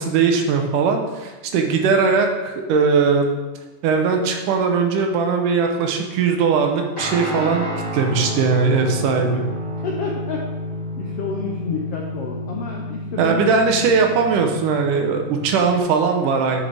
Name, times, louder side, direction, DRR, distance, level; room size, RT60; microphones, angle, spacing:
voice 1, 0.0-3.3 3.8-7.7 7.9-9.4 13.2-16.6, right 5 dB, 80° right, 3 dB, 2.5 m, -19 dB
Guitar, 7.0-15.8, equal, 10° left, 2.4 m, -30 dB
voice 2, 9.8-10.4 11.0-13.9, left 4 dB, 75° left, 0 dB, 1.4 m, -29 dB
9.9 x 6.3 x 3.4 m, 1.2 s
omnidirectional pair, 3.7 m